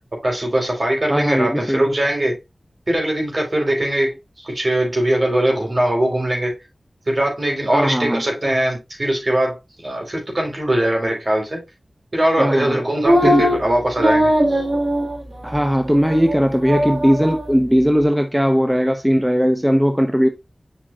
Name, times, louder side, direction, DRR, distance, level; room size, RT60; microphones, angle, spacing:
voice 1, 0.1-2.4 2.9-6.6 7.1-11.6 12.1-14.7, right 1 dB, 50° right, 3.9 m, -21 dB
voice 2, 1.1-1.8 7.7-8.2 12.4-12.8 13.2-13.5 15.4-20.3, equal, 10° right, 0.9 m, -18 dB
sound 1, 13.0-13.6 14.0-15.2 15.5-15.6 16.0-16.4 16.6-17.5, equal, 70° right, 3.3 m, -19 dB
7.5 x 5.9 x 2.4 m
cardioid pair, 40°, 0 cm